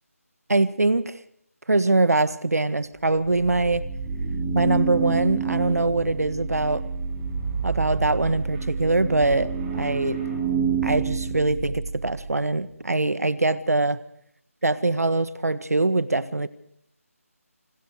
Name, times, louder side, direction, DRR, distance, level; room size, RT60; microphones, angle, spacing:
voice 1, 0.5-1.1 1.7-3.8 4.5-6.8 7.6-10.2 10.8-14.0 14.6-16.5, right 2 dB, 85° right, 15 dB, 1.6 m, -23 dB
sound 1, 3.0-12.3, right 5 dB, 15° right, 5.1 m, -29 dB
27.0 x 20.0 x 4.8 m, 0.69 s
figure-of-eight pair, 170°, 8 cm